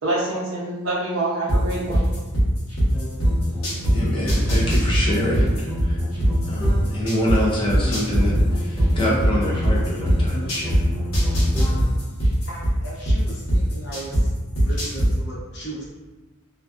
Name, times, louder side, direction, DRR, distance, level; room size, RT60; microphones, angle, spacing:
voice 1, 0.0-2.1, right 2 dB, 60° right, -6 dB, 0.6 m, -26 dB
sound 1, 1.5-3.9 4.3-7.4 7.7-10.8 11.1-14.2 14.6-15.1, right 1 dB, 75° left, 0.9 m, -19 dB
sound 2, 2.9-7.1 7.8-12.1, left 1 dB, ahead, 0.8 m, -29 dB
voice 2, 3.9-6.0 6.4-10.8, equal, 20° left, -5 dB, 0.3 m, -26 dB
voice 3, 12.5-14.3 14.6-15.8, right 2 dB, 50° left, -7 dB, 0.7 m, -36 dB
2.4 x 2.2 x 2.3 m, 1.3 s
head